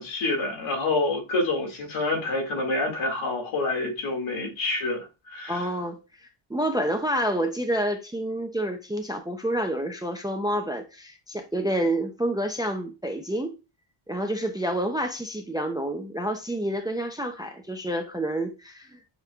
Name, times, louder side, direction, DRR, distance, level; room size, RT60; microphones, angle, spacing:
voice 1, 0.0-5.7, left 2 dB, 85° left, 1.9 m, -27 dB
voice 2, 5.5-13.5 14.1-19.0, right 1 dB, 10° right, 0.3 m, -28 dB
6.9 x 3.1 x 2.2 m
cardioid pair, 165°, 47 cm